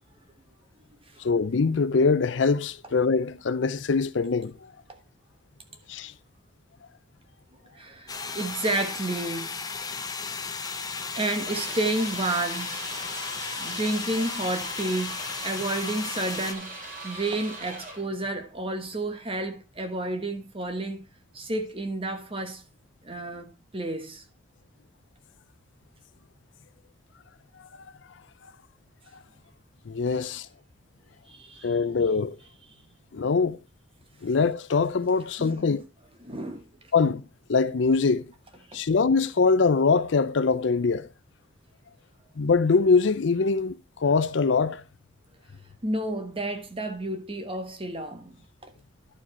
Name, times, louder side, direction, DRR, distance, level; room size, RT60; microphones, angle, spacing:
voice 1, 1.2-4.7 5.9-6.1 29.9-30.5 31.6-32.4 33.1-33.6 34.2-35.8 36.9-37.2 37.5-38.3 38.7-41.1 42.4-44.8, left 4 dB, 70° left, 0.5 m, -23 dB
voice 2, 7.7-9.6 10.7-12.8 13.6-21.0 21.3-22.6 23.0-24.2 31.3-31.7 32.7-32.9 35.4-35.5 36.2-36.6 38.7-38.8 45.8-48.7, right 2 dB, 30° right, 1.3 m, -31 dB
sound 1, 8.1-16.5, left 5 dB, 20° left, 0.8 m, -35 dB
sound 2, 11.4-18.1, right 2 dB, 45° right, 2.9 m, -40 dB
11.5 x 4.9 x 4.3 m
head